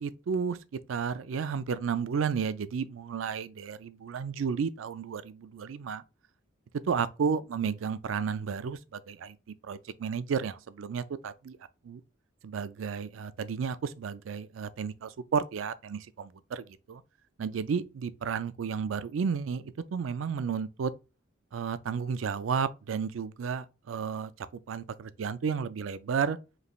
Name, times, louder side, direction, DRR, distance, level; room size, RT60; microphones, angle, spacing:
voice 1, 0.0-6.0 6.9-9.4 9.6-11.6 11.8-12.0 12.4-17.0 17.4-20.9 21.5-26.4, right 6 dB, 90° right, 0.4 m, -32 dB
5.1 x 3.2 x 2.4 m
head